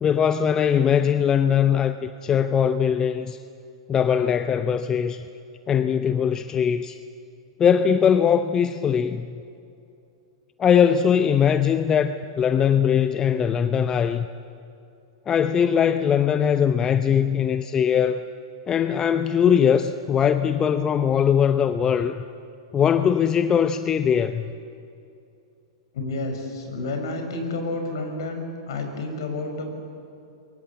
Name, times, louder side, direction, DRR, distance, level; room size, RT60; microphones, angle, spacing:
voice 1, 0.0-3.4 3.9-5.3 5.7-7.0 7.6-9.4 10.6-14.3 15.3-18.3 18.7-22.2 22.7-24.5, left 8 dB, 25° left, 11 dB, 0.8 m, -21 dB
voice 2, 25.9-29.7, left 2 dB, 65° left, 5 dB, 6.0 m, -30 dB
27.0 x 23.0 x 8.4 m, 2.5 s
figure-of-eight pair, 100°, 3 cm